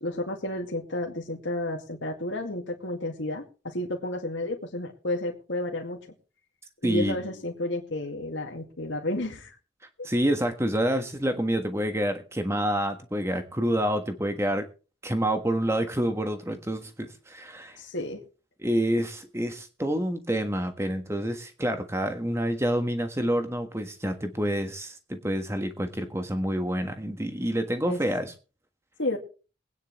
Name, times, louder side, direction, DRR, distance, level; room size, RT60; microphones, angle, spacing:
voice 1, 0.0-6.0 6.8-9.6 10.0-10.1 17.8-18.2 27.9-28.0 29.0-29.2, left 1 dB, 70° left, 1 dB, 2.2 m, -31 dB
voice 2, 6.8-7.2 10.0-14.7 15.0-17.8 18.6-28.3, equal, 15° right, 7 dB, 1.4 m, -28 dB
22.5 x 9.7 x 3.2 m, 0.35 s
head